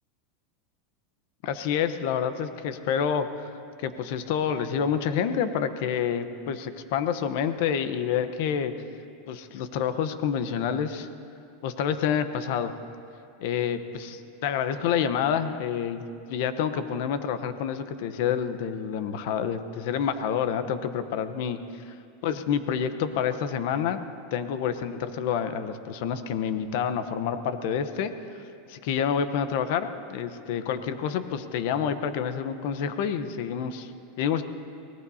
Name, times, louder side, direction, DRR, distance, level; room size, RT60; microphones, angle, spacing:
voice 1, 1.4-3.5 3.8-8.7 9.3-11.1 11.6-12.7 13.4-21.9 22.2-24.0 24.3-28.4 28.7-33.9 34.2-34.4, left 8 dB, 65° left, 10 dB, 1.0 m, -28 dB
24.0 x 18.0 x 2.8 m, 2.4 s
supercardioid pair, 130°, 0 cm